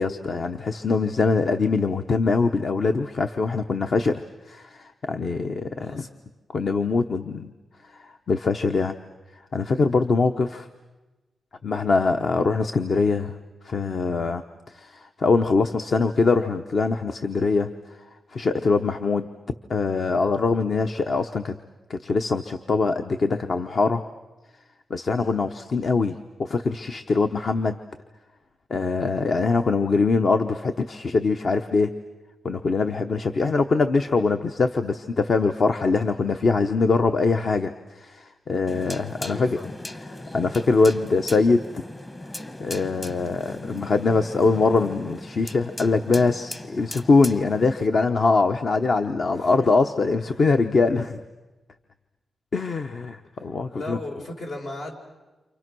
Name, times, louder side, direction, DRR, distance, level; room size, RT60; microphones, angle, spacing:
voice 1, 0.0-6.0 6.5-7.5 8.0-9.0 9.5-10.7 11.6-13.4 13.6-14.4 14.7-17.7 18.3-19.3 19.7-21.6 21.9-24.0 24.9-27.8 28.7-31.9 32.4-39.6 40.3-41.8 42.6-51.2 52.5-54.0, left 4 dB, 55° left, 7 dB, 0.9 m, -23 dB
voice 2, 5.8-6.1 39.2-39.8 49.3-49.7 50.2-50.4 53.3-54.9, left 2 dB, 75° left, 1 dB, 4.7 m, -37 dB
sound 1, 38.7-47.9, left 1 dB, 25° left, 1.2 m, -38 dB
29.5 x 27.0 x 6.2 m, 1.1 s
wide cardioid pair, 105°, 0 cm